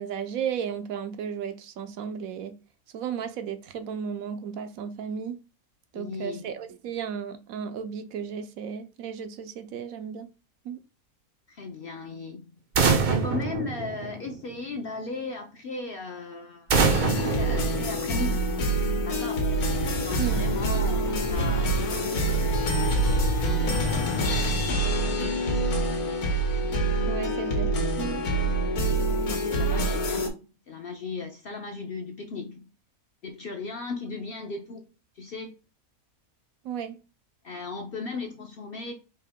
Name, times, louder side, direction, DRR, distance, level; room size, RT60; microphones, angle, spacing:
voice 1, 0.0-2.6 2.9-5.4 5.9-10.3 10.6-10.8 20.2-20.4 27.1-27.7 28.0-28.2 36.6-37.0, right 7 dB, 75° right, 1.0 m, -34 dB
voice 2, 5.9-6.5 11.5-12.5 13.1-16.7 17.3-18.4 19.1-19.5 20.0-26.2 28.8-32.7 33.2-34.8 35.2-35.5 37.4-38.9, left 4 dB, 55° left, 0.7 m, -37 dB
sound 1, 12.7-14.5 16.7-18.5, right 5 dB, 50° right, 0.5 m, -25 dB
sound 2, 16.7-30.3, right 1 dB, 85° left, 1.5 m, -26 dB
sound 3, 19.4-24.4, left 1 dB, 70° left, 1.5 m, -33 dB
4.7 x 2.9 x 3.5 m
omnidirectional pair, 1.5 m